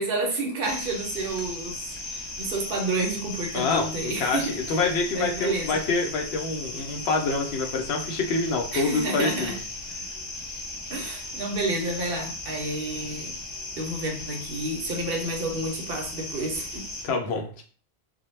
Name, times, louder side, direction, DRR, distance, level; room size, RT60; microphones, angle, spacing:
voice 1, 0.0-1.8 2.1-4.4 5.1-5.7 8.7-9.5 10.9-13.3 13.8-16.8, right 2 dB, 65° right, 1 dB, 0.8 m, -30 dB
sound 1, 0.6-17.1, left 2 dB, 40° left, 0.4 m, -37 dB
voice 2, 3.5-9.6 17.0-17.6, left 4 dB, 75° left, 1 dB, 0.8 m, -26 dB
2.1 x 2.1 x 3.1 m, 0.43 s
omnidirectional pair, 1.1 m